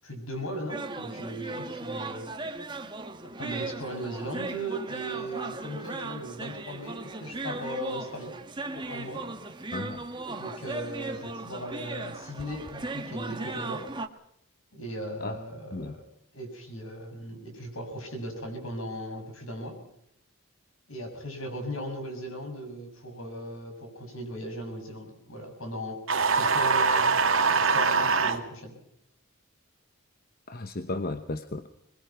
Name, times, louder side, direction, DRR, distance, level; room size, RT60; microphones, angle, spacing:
voice 1, 0.0-2.3 3.4-8.3 8.7-9.2 10.3-13.9 14.7-16.0 16.3-19.8 20.9-26.0 26.4-27.1 27.5-28.8, right 1 dB, 70° left, 4 dB, 6.8 m, -37 dB
sound 1, 0.7-14.1, right 2 dB, 20° right, 1.4 m, -37 dB
voice 2, 9.7-10.0 15.2-15.4 15.7-16.0 30.5-31.7, left 2 dB, 45° left, 10 dB, 1.0 m, -34 dB
sound 2, 26.1-28.4, right 4 dB, 70° right, 2.3 m, -23 dB
23.5 x 21.0 x 6.0 m, 0.76 s
head